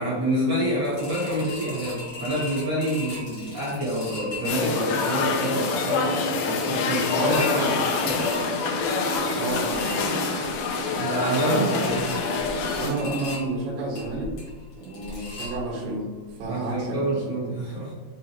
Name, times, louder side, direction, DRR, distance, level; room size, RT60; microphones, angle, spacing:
voice 1, 0.0-8.3 10.9-12.0 16.5-17.9, right 1 dB, 55° right, -7 dB, 1.5 m, -27 dB
sound 1, 0.8-16.0 16.4-16.5 16.8-16.9, left 2 dB, 55° left, 1.6 m, -39 dB
sound 2, 4.5-12.9, left 4 dB, 80° left, 2.4 m, -26 dB
voice 2, 9.4-10.3 11.4-12.0 12.8-14.3 14.8-17.3, right 2 dB, 80° right, -4 dB, 2.5 m, -30 dB
6.6 x 2.4 x 2.9 m, 1.4 s
omnidirectional pair, 4.2 m